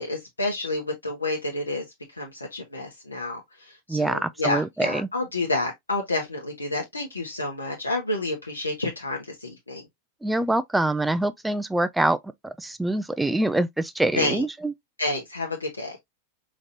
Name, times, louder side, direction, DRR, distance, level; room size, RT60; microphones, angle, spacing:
voice 1, 0.0-1.8 2.2-3.4 3.9-9.8 14.1-14.4 15.0-16.0, left 2 dB, 80° left, 1.1 m, -29 dB
voice 2, 3.9-5.1 10.2-12.2 12.4-14.7, right 2 dB, 5° right, 0.4 m, -25 dB
5.0 x 3.1 x 2.6 m
figure-of-eight pair, 90°, 0 cm